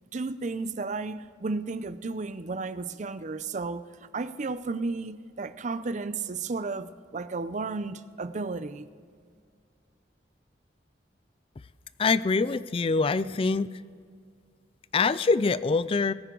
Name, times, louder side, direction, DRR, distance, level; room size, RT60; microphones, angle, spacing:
voice 1, 0.1-3.9 4.1-8.9, right 3 dB, 45° right, 0.5 m, -33 dB
voice 2, 12.0-13.7 14.9-16.1, left 4 dB, 30° left, 0.4 m, -24 dB
20.5 x 9.5 x 3.9 m
head